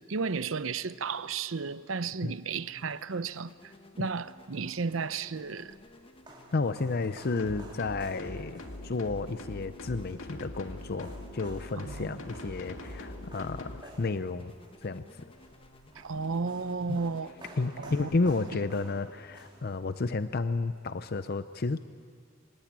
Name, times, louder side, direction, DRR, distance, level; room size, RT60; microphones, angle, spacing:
voice 1, 0.1-5.8 11.8-12.2 16.0-17.3 17.8-18.1 18.5-18.6, right 4 dB, 80° right, 0.7 m, -33 dB
sound 1, 2.5-20.2, left 1 dB, 25° left, 1.1 m, -56 dB
sound 2, 5.2-20.2, right 1 dB, 25° right, 3.8 m, -53 dB
voice 2, 6.5-14.5 14.8-15.2 16.9-17.0 17.6-21.8, left 3 dB, 50° left, 0.6 m, -32 dB
sound 3, 7.4-13.8, left 1 dB, 90° left, 1.9 m, -43 dB
25.5 x 19.5 x 8.8 m
head